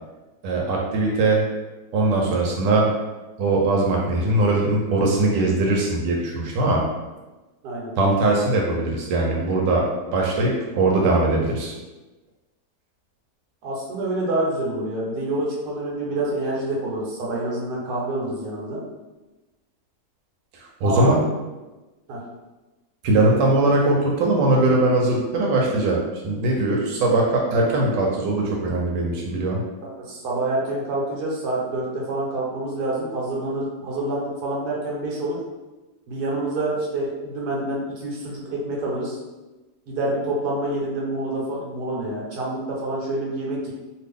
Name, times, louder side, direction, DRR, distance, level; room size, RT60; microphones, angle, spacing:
voice 1, 0.4-1.4 1.9-2.9 3.4-6.8 8.0-9.8 10.1-11.7 20.5-21.2 23.0-26.0 26.2-29.6, right 2 dB, 90° right, -2 dB, 1.3 m, -20 dB
voice 2, 13.6-18.8 20.8-21.2 22.1-22.2 29.8-35.4 36.1-39.2 39.9-43.7, right 2 dB, 65° right, -4 dB, 1.4 m, -27 dB
2.9 x 2.5 x 3.4 m, 1.1 s
omnidirectional pair, 1.9 m